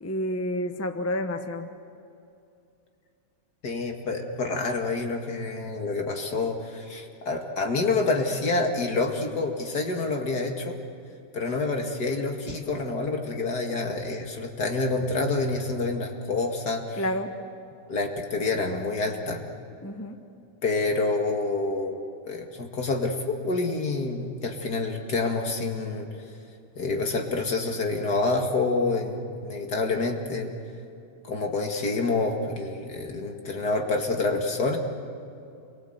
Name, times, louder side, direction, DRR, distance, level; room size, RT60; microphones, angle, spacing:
voice 1, 0.0-1.7 17.0-17.5 19.8-20.2, left 1 dB, 10° left, 7 dB, 0.9 m, -30 dB
voice 2, 3.6-10.8 11.3-17.0 17.9-19.4 20.6-22.0 22.2-26.1 26.8-30.5 31.2-34.8, left 3 dB, 70° left, 2 dB, 2.6 m, -27 dB
29.0 x 22.5 x 8.0 m, 2.6 s
omnidirectional pair, 1.8 m